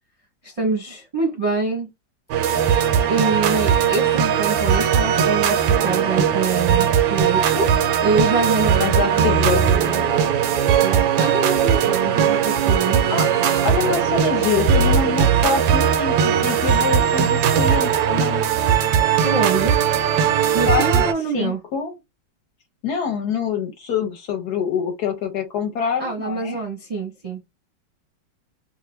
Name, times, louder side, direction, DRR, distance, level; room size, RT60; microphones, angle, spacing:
voice 1, 0.4-1.9 3.1-7.7 8.0-10.0 10.8-13.1 19.2-19.8 20.5-21.6 26.0-27.4, right 3 dB, 30° right, 0.6 m, -25 dB
sound 1, 2.3-21.1, right 8 dB, 80° right, 1.3 m, -19 dB
voice 2, 8.8-9.6 13.1-13.3 13.6-18.4 20.7-21.0 21.3-22.0 22.8-26.6, left 6 dB, 65° left, 1.1 m, -25 dB
3.1 x 2.5 x 3.2 m
omnidirectional pair, 2.1 m